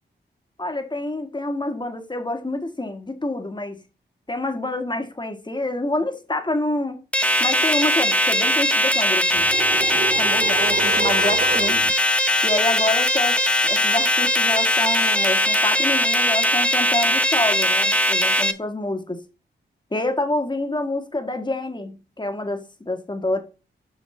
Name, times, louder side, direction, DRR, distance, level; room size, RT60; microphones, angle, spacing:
voice 1, 0.6-3.8 4.3-7.0 7.4-9.5 9.9-11.9 12.4-19.2 19.9-23.4, left 2 dB, 25° left, 1.6 m, -27 dB
sound 1, 7.1-18.5, left 1 dB, 5° left, 0.8 m, -20 dB
sound 2, 9.3-11.9, right 5 dB, 50° right, 0.6 m, -29 dB
9.1 x 5.7 x 3.3 m
cardioid pair, 60°, 19 cm